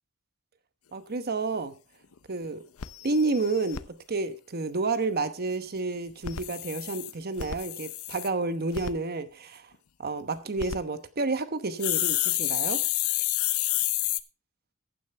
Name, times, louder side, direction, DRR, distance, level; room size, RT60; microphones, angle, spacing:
voice 1, 0.9-1.7 2.3-2.6 3.0-9.7 10.0-12.8, right 3 dB, 50° right, 1.0 m, -30 dB
sound 1, 1.6-1.7 2.1-2.2 2.4-2.5 2.8-3.8 6.1-8.3 8.7-8.9 10.4-10.8 11.8-14.2, left 15 dB, 90° left, 0.7 m, -29 dB
15.0 x 9.2 x 3.3 m
head